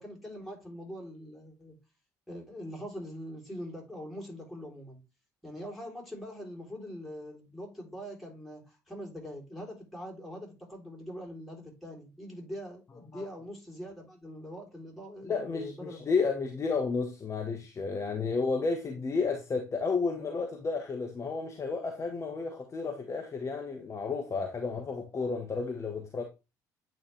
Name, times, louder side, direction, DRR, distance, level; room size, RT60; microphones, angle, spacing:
voice 1, 0.0-1.8 2.3-5.0 5.4-16.1, equal, ahead, 3.4 m, -43 dB
voice 2, 15.2-26.2, left 4 dB, 30° left, 1.1 m, -32 dB
8.5 x 4.0 x 3.2 m
figure-of-eight pair, 50°, 10 cm